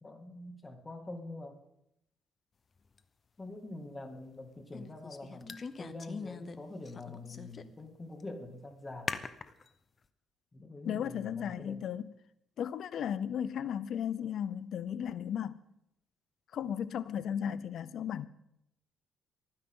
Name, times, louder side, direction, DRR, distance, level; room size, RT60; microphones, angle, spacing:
voice 1, 0.0-1.6 3.4-9.2 10.5-11.8, left 2 dB, 25° left, 2.4 m, -45 dB
sound 1, 3.0-3.1 4.7-6.6 6.8-7.8 8.2-8.3 9.1-9.7, left 5 dB, 40° left, 0.8 m, -41 dB
voice 2, 10.9-12.1 12.6-15.6 16.5-18.3, left 9 dB, 70° left, 0.7 m, -35 dB
29.5 x 10.0 x 3.9 m
cardioid pair, 90°, 0 cm